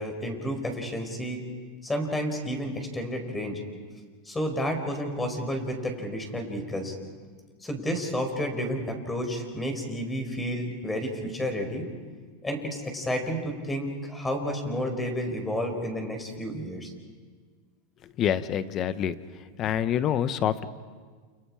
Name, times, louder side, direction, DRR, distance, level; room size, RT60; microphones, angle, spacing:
voice 1, 0.0-1.4 1.8-3.6 4.2-7.0 7.6-11.8 12.4-16.9, equal, 10° left, 5 dB, 4.9 m, -31 dB
voice 2, 18.2-19.2 19.6-20.6, left 9 dB, 40° left, 12 dB, 1.2 m, -26 dB
29.5 x 29.0 x 5.0 m, 1.5 s
supercardioid pair, 120°, 0 cm